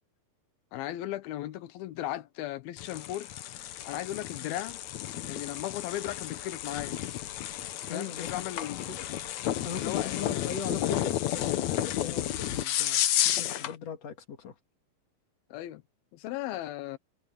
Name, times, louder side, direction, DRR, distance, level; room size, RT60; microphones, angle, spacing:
voice 1, 0.7-3.3 3.8-4.8 5.3-7.0 7.9-8.9 9.7-10.5 15.5-15.8 16.1-17.0, left 14 dB, 90° left, 2.8 m, -36 dB
sound 1, 2.8-13.8, left 12 dB, 65° left, 1.9 m, -32 dB
voice 2, 7.9-9.1 9.6-13.0 13.2-14.5, left 7 dB, 50° left, 2.9 m, -39 dB
omnidirectional pair, 4.2 m